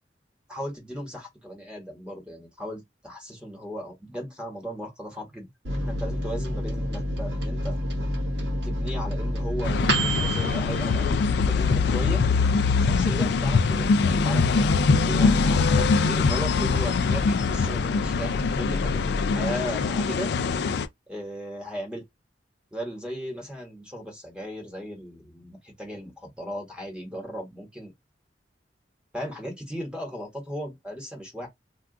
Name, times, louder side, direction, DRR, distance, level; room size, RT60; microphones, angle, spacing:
voice 1, 0.5-5.5 5.9-7.8 8.5-12.3 12.8-20.3 21.1-22.0 22.7-27.9 29.1-31.5, equal, 5° right, 1.2 m, -36 dB
Microwave oven, 5.6-11.7 12.1-12.2 12.5-13.1, equal, 65° right, 0.9 m, -29 dB
sound 1, 9.6-20.9, left 4 dB, 65° left, 0.4 m, -23 dB
2.4 x 2.3 x 3.6 m
head